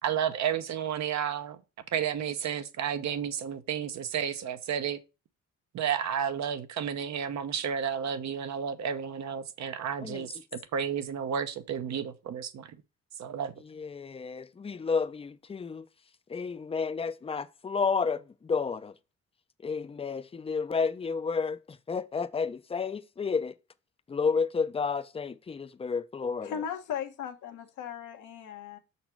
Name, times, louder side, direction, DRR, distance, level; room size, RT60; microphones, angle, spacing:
voice 1, 0.0-1.6 1.9-5.0 5.7-12.8 13.2-13.5, right 8 dB, 65° right, 0.9 m, -32 dB
voice 2, 13.7-15.9 16.3-18.9 19.6-21.6 21.9-23.5 24.1-26.5, left 5 dB, 20° left, 0.5 m, -31 dB
voice 3, 26.4-28.8, left 8 dB, 85° left, 1.2 m, -37 dB
6.0 x 4.2 x 4.5 m
cardioid pair, 90°, 30 cm